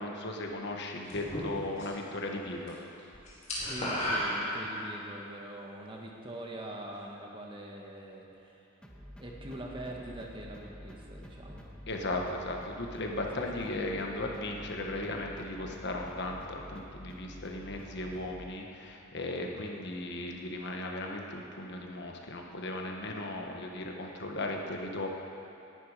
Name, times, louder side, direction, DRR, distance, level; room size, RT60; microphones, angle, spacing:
voice 1, 0.0-2.7 11.9-25.1, left 2 dB, 60° left, 1 dB, 1.5 m, -36 dB
sound 1, 1.1-2.1 2.4-5.1, equal, 35° left, 4.1 m, -33 dB
voice 2, 3.6-8.6 9.2-11.6 13.4-13.5, right 1 dB, 25° right, -1 dB, 1.8 m, -43 dB
sound 2, 8.8-18.5, equal, 5° left, 1.1 m, -49 dB
18.5 x 11.5 x 5.0 m, 2.7 s
head